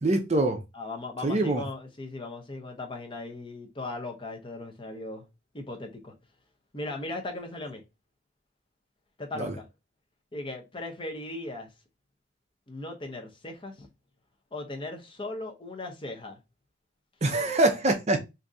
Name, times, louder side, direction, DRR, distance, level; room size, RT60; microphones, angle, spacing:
voice 1, 0.0-0.6 1.2-1.6 9.3-9.6 17.2-18.2, right 2 dB, 35° right, 0.6 m, -24 dB
voice 2, 0.7-5.3 5.5-6.1 6.7-7.8 9.2-9.6 10.3-11.7 12.7-13.9 14.5-16.4, left 2 dB, 25° left, 0.7 m, -38 dB
3.6 x 2.6 x 2.6 m
head